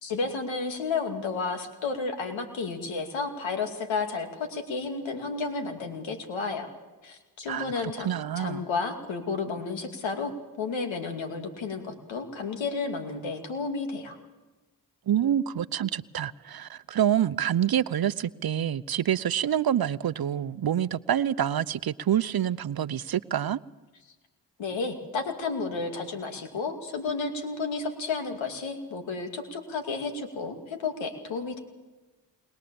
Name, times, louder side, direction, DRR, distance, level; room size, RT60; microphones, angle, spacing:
voice 1, 0.0-6.7 7.0-8.1 8.4-10.3 10.6-14.2 24.6-31.6, left 4 dB, 80° left, 5 dB, 2.6 m, -32 dB
voice 2, 7.5-8.6 15.1-23.6, right 10 dB, 55° right, 16 dB, 0.8 m, -27 dB
21.5 x 20.5 x 7.1 m, 1.2 s
supercardioid pair, 40°, 45 cm